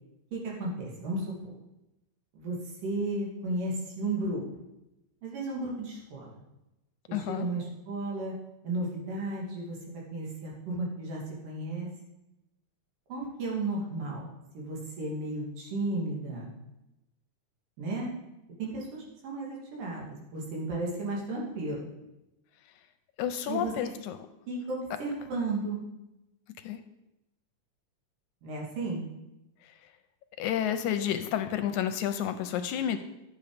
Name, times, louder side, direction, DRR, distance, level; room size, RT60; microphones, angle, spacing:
voice 1, 0.3-1.5 2.4-2.6 2.8-4.4 5.2-6.3 7.1-8.3 8.6-11.9 13.1-14.3 14.5-16.5 17.8-18.1 18.6-20.1 20.3-21.8 23.5-23.7 24.5-25.8 28.4-29.0, right 2 dB, 85° right, -3 dB, 4.4 m, -34 dB
voice 2, 7.1-7.5 23.2-24.2 26.6-26.8 30.4-33.0, left 10 dB, 80° left, 9 dB, 1.9 m, -30 dB
12.0 x 8.3 x 5.1 m, 0.92 s
omnidirectional pair, 3.7 m